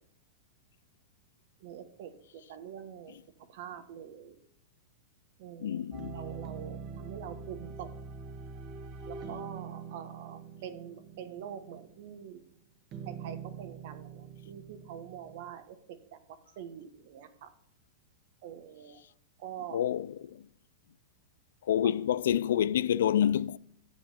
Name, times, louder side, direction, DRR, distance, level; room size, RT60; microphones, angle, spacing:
voice 1, 1.6-3.2 3.5-4.4 5.4-5.8 6.1-7.9 9.1-12.4 13.0-16.2 16.6-17.5 18.4-19.0 19.4-19.8, right 9 dB, 60° right, 1.2 m, -45 dB
voice 2, 5.6-6.2 19.7-20.4 21.7-23.6, left 10 dB, 80° left, 0.3 m, -28 dB
sound 1, 5.9-12.1 12.9-15.5, right 5 dB, 35° right, 1.4 m, -44 dB
9.5 x 7.6 x 4.1 m
hypercardioid pair, 130°, 0 cm